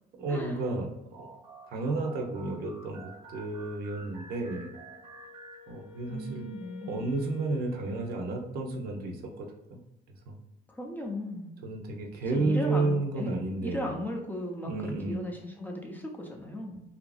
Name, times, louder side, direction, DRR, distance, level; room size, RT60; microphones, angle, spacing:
voice 1, 0.1-0.9 1.2-1.3 1.7-4.7 5.7-6.5 6.8-9.8 10.1-10.4 11.6-14.0 14.7-15.2, right 3 dB, 65° right, 2 dB, 0.6 m, -32 dB
sound 1, 1.1-6.2, right 3 dB, 25° right, 0.7 m, -50 dB
Wind instrument woodwind instrument, 4.7-9.0, left 9 dB, 80° left, 0.4 m, -52 dB
voice 2, 6.1-7.0 10.7-11.5 12.3-16.8, left 1 dB, 10° left, 0 dB, 0.5 m, -36 dB
2.8 x 2.4 x 2.3 m, 0.92 s
cardioid pair, 110°, 17 cm